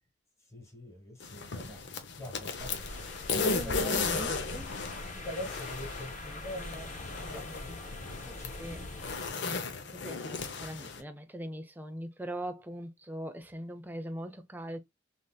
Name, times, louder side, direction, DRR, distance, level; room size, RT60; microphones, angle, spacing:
voice 1, 0.5-2.9 3.4-4.3 4.7-6.9 7.2-8.9, equal, 15° left, 1.4 m, -44 dB
sound 1, 1.2-11.0, left 4 dB, 70° left, 0.7 m, -36 dB
sound 2, 2.6-9.3, left 2 dB, 40° left, 1.0 m, -43 dB
voice 2, 3.3-5.2 7.2-7.8 8.6-8.8 9.9-14.8, right 1 dB, 10° right, 0.5 m, -41 dB
3.3 x 2.6 x 2.2 m
head